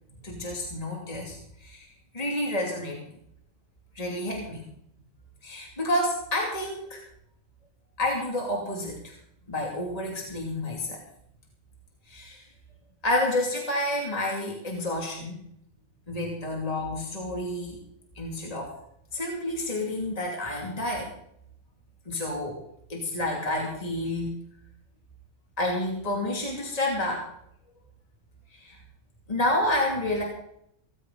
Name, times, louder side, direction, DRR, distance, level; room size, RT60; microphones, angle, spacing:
voice 1, 0.2-1.9 2.1-3.0 3.9-4.6 5.4-7.0 8.0-9.2 9.5-11.0 12.1-12.4 13.0-15.4 16.1-17.8 18.2-18.7 19.1-21.1 22.1-22.6 22.9-24.3 25.6-27.2 28.5-28.8 29.3-30.2, left 1 dB, 30° left, -1 dB, 2.8 m, -29 dB
18.5 x 14.5 x 4.0 m, 0.73 s
omnidirectional pair, 1.4 m